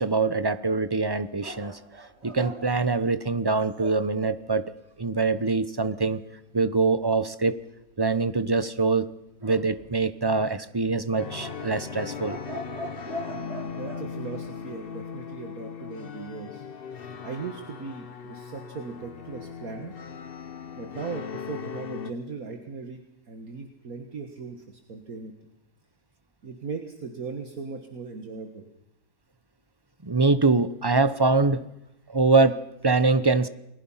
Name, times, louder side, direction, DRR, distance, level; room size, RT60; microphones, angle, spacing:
voice 1, 0.0-1.8 2.2-4.6 5.0-6.2 6.5-7.6 8.0-9.1 9.4-12.4 30.0-31.7 32.1-33.5, right 3 dB, 25° right, 13 dB, 0.6 m, -24 dB
sound 1, 1.4-4.0 9.4-10.3 11.3-14.1, right 1 dB, 40° right, 3.1 m, -40 dB
sound 2, 11.2-22.1, left 7 dB, 40° left, 1.1 m, -38 dB
voice 2, 13.2-16.7 17.2-19.9 20.7-25.3 26.4-28.7, right 4 dB, 65° right, 5 dB, 2.1 m, -38 dB
30.0 x 21.0 x 5.7 m, 0.86 s
omnidirectional pair, 1.7 m